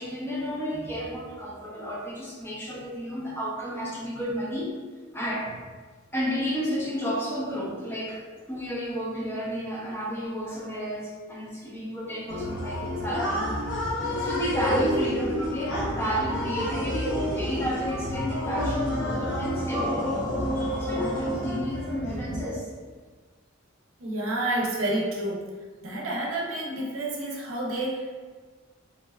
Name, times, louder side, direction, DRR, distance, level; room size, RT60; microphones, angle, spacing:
voice 1, 0.0-4.7 5.1-5.5 6.1-13.5 13.8-20.2 20.5-22.7, equal, 10° left, -6 dB, 0.5 m, -31 dB
sound 1, 12.3-22.4, equal, 60° left, 0.8 m, -29 dB
voice 2, 24.0-25.4 25.8-28.1, right 1 dB, 85° right, -2 dB, 0.6 m, -29 dB
3.7 x 2.2 x 2.3 m, 1.4 s
head